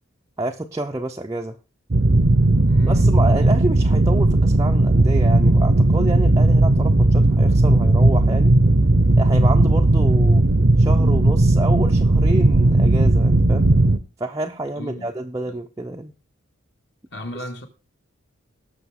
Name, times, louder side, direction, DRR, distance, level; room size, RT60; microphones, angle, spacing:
voice 1, 0.4-1.6 2.9-8.6 9.2-10.4 10.8-13.7 14.2-16.1, right 2 dB, 15° right, 0.6 m, -28 dB
sound 1, 1.9-14.0, right 2 dB, 50° right, 0.7 m, -16 dB
voice 2, 2.7-3.5 14.7-15.1 17.1-17.7, equal, 55° left, 2.3 m, -35 dB
18.5 x 6.5 x 3.7 m
head